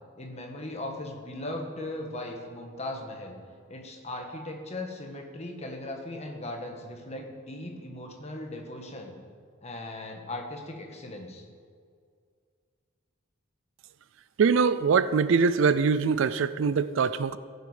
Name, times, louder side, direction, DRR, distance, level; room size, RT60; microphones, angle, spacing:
voice 1, 0.1-3.4 3.7-9.1 9.6-11.4, left 1 dB, 30° left, 1.4 m, -38 dB
voice 2, 14.4-17.4, right 5 dB, 65° right, 0.4 m, -23 dB
15.5 x 6.9 x 5.0 m
head